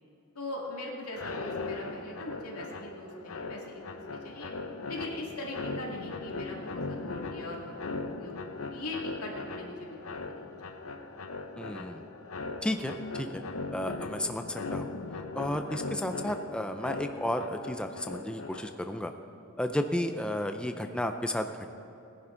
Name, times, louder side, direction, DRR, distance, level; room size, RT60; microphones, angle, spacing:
voice 1, 0.3-4.0 4.2-4.5 4.9-8.3 8.7-10.7, left 2 dB, 85° left, -2 dB, 2.3 m, -40 dB
sound 1, 1.1-18.9, left 3 dB, 70° left, 0.8 m, -39 dB
voice 2, 11.6-12.0 12.6-13.4 13.7-14.8 15.3-19.1 19.6-21.7, left 1 dB, 5° left, 6 dB, 0.4 m, -33 dB
18.5 x 10.5 x 3.9 m, 3.0 s
head